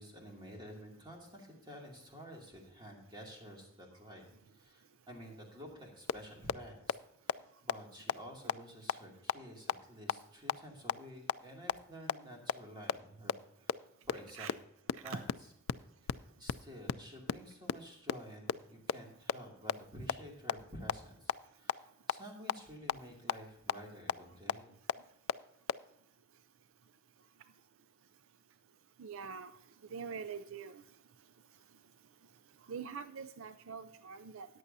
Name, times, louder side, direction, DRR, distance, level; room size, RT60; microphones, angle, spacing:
voice 1, 0.0-7.0 7.2-14.5 15.0-15.2 16.0-24.7, equal, 20° right, -1 dB, 2.5 m, -51 dB
sound 1, 6.1-6.2 6.5-6.6 6.9-7.0 7.3-7.4 7.7-7.8 8.1-8.2 8.5-8.6 8.9-9.0 9.3-9.4 9.7-9.8 10.1-10.2 10.5-10.6 10.9-11.0 11.3-11.4 11.7-11.8 12.1-12.2 12.5-12.6 12.9-13.0 13.3-13.4 13.7-13.8 14.1-14.2 14.5-14.6 14.9-15.0 15.3-15.4 15.7-15.8 16.1-16.2 16.5-16.6 16.9-17.0 17.3-17.4 17.7-17.8 18.1-18.2 18.5-18.6 18.9-19.0 19.3-19.4 19.7-19.8 20.1-20.2 20.5-20.6 20.9-21.0 21.3-21.4 21.7-21.8 22.1-22.2 22.5-22.6 22.9-23.0 23.3-23.4 23.7-23.8 24.1-24.2 24.5-24.6 24.9-25.0 25.3-25.4 25.7-25.8, left 8 dB, 70° left, 0.4 m, -30 dB
voice 2, 29.0-29.6 29.9-30.8 32.7-34.5, right 6 dB, 65° right, 12 dB, 0.4 m, -44 dB
14.0 x 9.7 x 2.7 m, 0.81 s
head